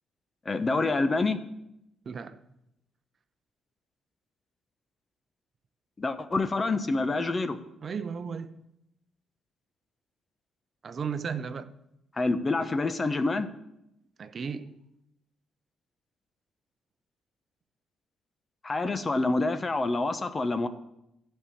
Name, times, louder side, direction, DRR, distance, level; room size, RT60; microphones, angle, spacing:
voice 1, 0.5-1.4 6.0-7.6 12.2-13.5 18.6-20.7, left 3 dB, 30° left, 0.9 m, -27 dB
voice 2, 2.1-2.4 7.8-8.6 10.8-11.7 14.2-14.8, right 6 dB, 45° right, 0.7 m, -35 dB
12.5 x 5.6 x 8.4 m
cardioid pair, 90°, 0 cm